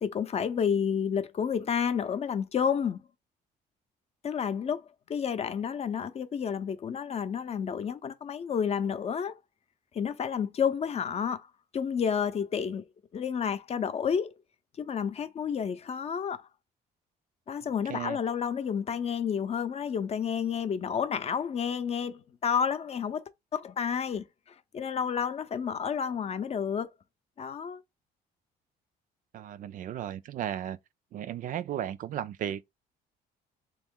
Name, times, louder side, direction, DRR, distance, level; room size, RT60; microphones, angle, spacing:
voice 1, 0.0-3.0 4.2-4.8 5.1-9.3 9.9-11.5 11.7-12.8 13.1-14.3 14.8-16.4 17.5-23.2 23.5-24.2 24.7-26.9 27.4-27.8, left 7 dB, 40° left, 0.6 m, -30 dB
voice 2, 29.3-30.8 31.1-32.6, right 10 dB, 50° right, 0.4 m, -35 dB
3.4 x 3.0 x 3.7 m
cardioid pair, 110°, 17 cm